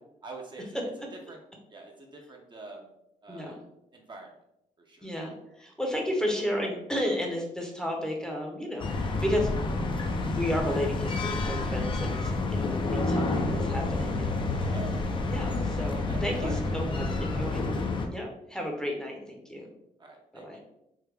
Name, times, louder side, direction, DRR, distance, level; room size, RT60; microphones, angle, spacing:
voice 1, 0.2-0.9 1.3-1.4 1.7-2.9 3.2-3.6 3.9-4.3 4.8-5.1 13.8-13.9 14.7-14.9 15.9-17.9 20.0-20.6, right 2 dB, 30° right, 0 dB, 0.6 m, -45 dB
voice 2, 3.3-3.6 5.0-9.5 10.3-14.8 15.3-17.6 18.1-19.7 20.3-20.6, equal, 5° left, 0 dB, 0.7 m, -33 dB
sound 1, 8.8-18.1, left 3 dB, 35° left, 0.5 m, -29 dB
3.5 x 2.1 x 3.3 m, 0.81 s
cardioid pair, 100°, 15 cm